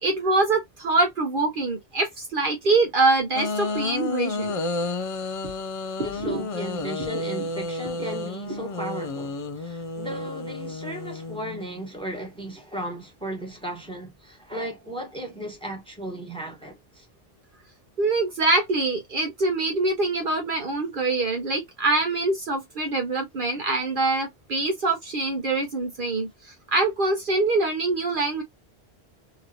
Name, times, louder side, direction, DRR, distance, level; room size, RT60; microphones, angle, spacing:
voice 1, 0.0-4.6 6.2-6.4 18.0-26.3 26.7-28.4, right 3 dB, 55° right, 0.9 m, -24 dB
sound 1, 3.3-11.8, left 3 dB, 45° left, 0.4 m, -31 dB
voice 2, 6.0-17.1, right 1 dB, 5° left, 1.2 m, -35 dB
2.9 x 2.9 x 2.4 m
omnidirectional pair, 1.1 m